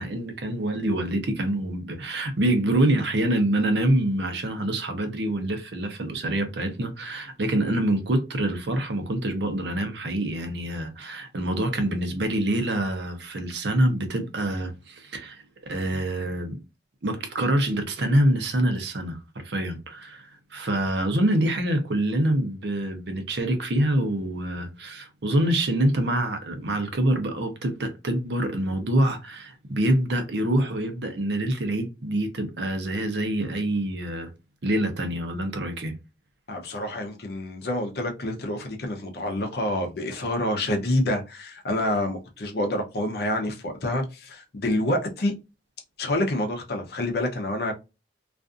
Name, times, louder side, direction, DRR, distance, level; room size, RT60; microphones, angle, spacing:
voice 1, 0.0-16.6 17.0-34.3 34.6-35.9, right 1 dB, 70° right, 0.7 m, -26 dB
voice 2, 36.5-45.3 46.0-47.7, left 1 dB, 60° left, 0.6 m, -27 dB
2.5 x 2.4 x 2.4 m
head